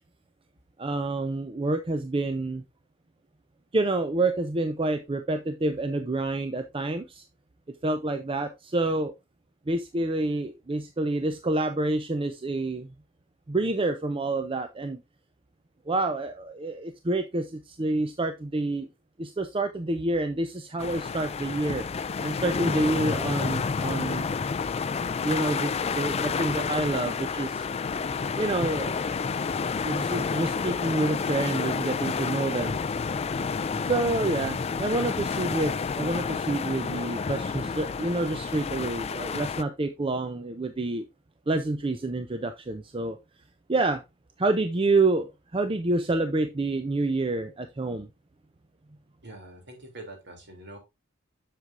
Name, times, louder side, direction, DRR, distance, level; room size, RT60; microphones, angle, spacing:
voice 1, 0.8-2.6 3.7-7.2 7.8-9.1 9.7-12.9 13.5-15.0 15.9-18.9 19.2-21.9 22.2-24.3 25.2-27.7 28.4-29.0 29.8-32.8 33.9-41.1 41.5-43.2 43.7-44.0 44.4-48.1, right 2 dB, 25° right, 8 dB, 0.5 m, -28 dB
sound 1, 20.8-39.6, left 5 dB, 30° left, 0.4 m, -30 dB
voice 2, 33.7-34.1 49.2-50.8, right 2 dB, 55° right, 3 dB, 2.8 m, -44 dB
7.7 x 6.7 x 2.5 m, 0.22 s
head